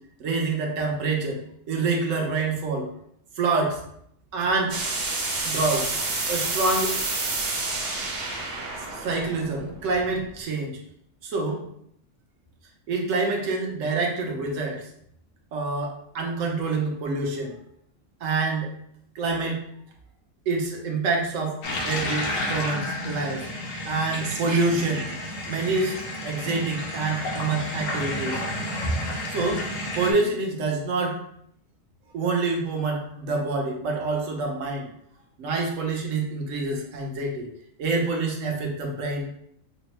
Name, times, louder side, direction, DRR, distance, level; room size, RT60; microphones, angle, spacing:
voice 1, 0.2-1.4 1.7-2.9 3.4-3.8 4.3-4.7 5.4-5.9 6.3-6.9 7.3-7.5 8.7-10.8 11.2-11.6 12.9-14.9 15.5-17.6 18.2-18.7 19.1-19.6 20.5-21.6 21.8-23.5 23.8-25.2 25.5-26.0 26.2-28.4 29.3-29.6 29.9-31.2 32.1-34.9 35.4-37.5 37.8-39.3, right 3 dB, 80° right, 1 dB, 1.1 m, -26 dB
sound 1, 4.7-10.4, right 3 dB, 55° right, 0.9 m, -29 dB
sound 2, 21.6-30.1, left 1 dB, 90° left, 1.2 m, -31 dB
3.6 x 2.0 x 4.4 m, 0.70 s
omnidirectional pair, 1.3 m